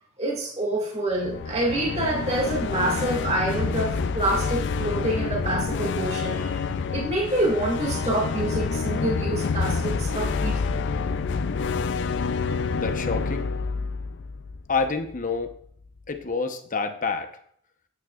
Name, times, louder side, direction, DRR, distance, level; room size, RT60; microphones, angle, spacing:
voice 1, 0.2-10.8, right 1 dB, 30° right, -2 dB, 1.9 m, -27 dB
sound 1, 1.1-15.2, left 5 dB, 55° left, 0.4 m, -28 dB
voice 2, 12.8-13.5 14.7-15.6 16.1-17.3, left 4 dB, 40° left, 6 dB, 0.9 m, -27 dB
9.2 x 9.1 x 2.4 m, 0.63 s
head